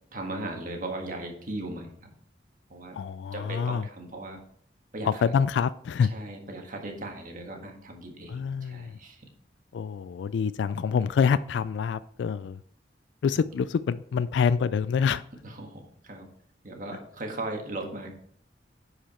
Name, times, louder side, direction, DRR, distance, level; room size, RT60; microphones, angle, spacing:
voice 1, 0.1-2.1 2.7-3.0 3.3-4.4 4.9-5.2 6.1-9.2 15.4-16.3 16.6-18.1, right 2 dB, 50° right, 2 dB, 1.6 m, -37 dB
voice 2, 2.9-3.9 5.0-6.1 8.3-9.0 9.7-12.6 13.2-15.2, left 6 dB, 80° left, 15 dB, 0.3 m, -26 dB
10.0 x 4.9 x 4.3 m, 0.62 s
head